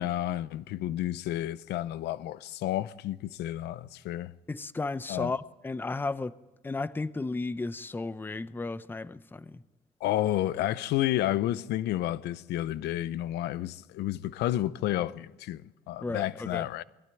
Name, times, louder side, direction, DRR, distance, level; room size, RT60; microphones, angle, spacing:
voice 1, 0.0-4.3 5.1-5.3 10.0-15.6 15.9-16.8, left 13 dB, 80° left, 0.8 m, -31 dB
voice 2, 4.5-6.4 6.6-9.6 16.0-16.7, left 3 dB, 10° left, 0.6 m, -34 dB
21.0 x 15.5 x 9.1 m
cardioid pair, 110°, 17 cm